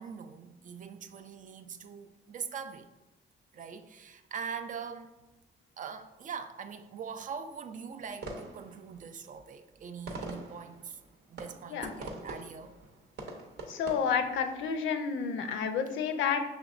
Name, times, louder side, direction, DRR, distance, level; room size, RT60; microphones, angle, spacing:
voice 1, 0.0-2.9 3.5-5.1 5.8-11.0 11.3-12.7, right 6 dB, 40° right, 8 dB, 0.4 m, -42 dB
sound 1, 8.0-14.8, right 2 dB, 55° right, 0.8 m, -45 dB
voice 2, 13.7-16.4, left 6 dB, 75° left, 8 dB, 0.5 m, -30 dB
6.1 x 2.9 x 2.4 m, 1.0 s
cardioid pair, 90°, 20 cm